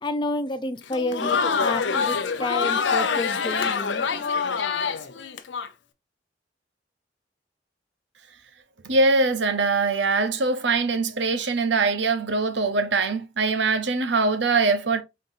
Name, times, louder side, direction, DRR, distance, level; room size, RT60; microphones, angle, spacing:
voice 1, 0.0-4.0, left 2 dB, 25° left, 0.6 m, -30 dB
Crowd, 0.8-5.7, left 5 dB, 85° left, 0.7 m, -25 dB
voice 2, 8.8-15.0, right 3 dB, 70° right, 0.9 m, -22 dB
5.3 x 3.9 x 2.5 m
head